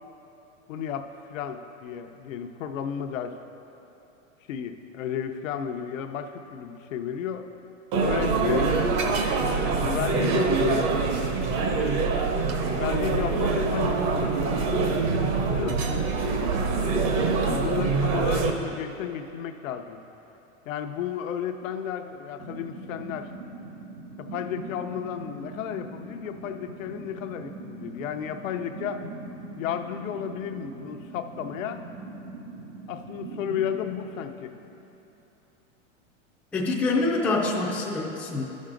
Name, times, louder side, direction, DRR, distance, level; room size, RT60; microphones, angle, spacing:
voice 1, 0.7-3.3 4.5-7.5 8.0-8.9 9.8-11.0 12.7-15.0 15.5-15.8 17.4-20.0 20.7-23.3 24.2-29.0 29.6-31.8 32.9-34.5, left 9 dB, 80° left, 6 dB, 0.7 m, -33 dB
Restaurant Sound, 7.9-18.5, right 4 dB, 35° right, 0.7 m, -24 dB
sound 1, 22.4-35.1, right 2 dB, 90° right, 1.3 m, -41 dB
voice 2, 36.5-38.4, left 3 dB, 5° left, -4 dB, 0.4 m, -25 dB
12.0 x 6.3 x 3.8 m, 3.0 s
supercardioid pair, 155°, 39 cm